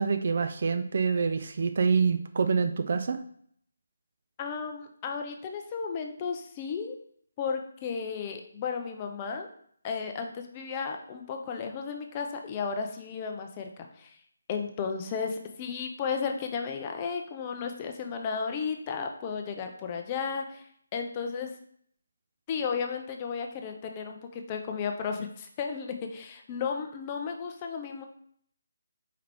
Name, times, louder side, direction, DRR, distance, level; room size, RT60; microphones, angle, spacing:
voice 1, 0.0-3.2, right 5 dB, 45° right, 9 dB, 0.3 m, -26 dB
voice 2, 4.4-7.0 7.4-9.5 9.8-14.1 14.5-20.6 20.9-21.6 22.5-28.1, left 6 dB, 25° left, 4 dB, 0.5 m, -34 dB
4.6 x 3.5 x 3.2 m, 0.63 s
figure-of-eight pair, 150°, 0 cm